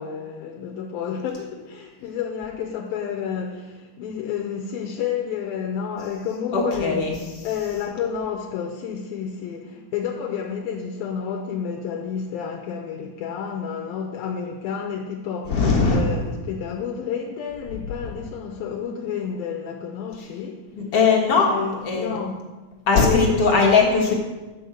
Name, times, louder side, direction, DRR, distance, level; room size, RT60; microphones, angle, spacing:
voice 1, 0.0-7.1 7.4-15.6 15.9-20.6 21.3-22.4 23.0-23.5, left 7 dB, 75° left, 1 dB, 2.3 m, -30 dB
voice 2, 6.5-7.1 15.5-16.2 18.0-18.1 20.7-21.5 21.8-22.1 22.9-24.1, left 4 dB, 55° left, -2 dB, 1.7 m, -19 dB
11.5 x 5.4 x 7.7 m, 1.2 s
omnidirectional pair, 4.7 m